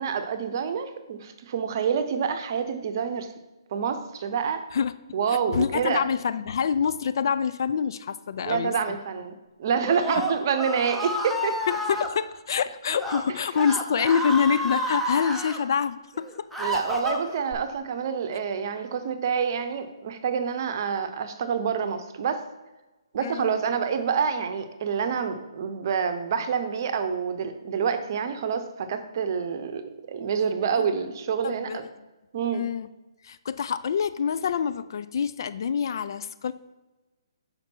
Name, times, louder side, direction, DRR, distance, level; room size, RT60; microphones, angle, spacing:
voice 1, 0.0-3.3 3.7-4.6 5.1-6.1 8.4-9.3 9.6-11.6 16.6-22.4 23.1-29.8 30.1-31.9 32.3-32.7, right 6 dB, 45° right, 9 dB, 0.7 m, -27 dB
voice 2, 5.3-9.0 11.7-16.5 23.2-23.6 30.8-30.9 31.4-31.8 32.5-32.9 33.2-36.5, left 7 dB, 55° left, 13 dB, 0.4 m, -26 dB
Screaming, 9.7-12.1 12.9-13.2 13.5-15.6 16.1-17.5, left 1 dB, ahead, 0.7 m, -30 dB
5.9 x 5.1 x 4.4 m, 1.1 s
figure-of-eight pair, 140°, 3 cm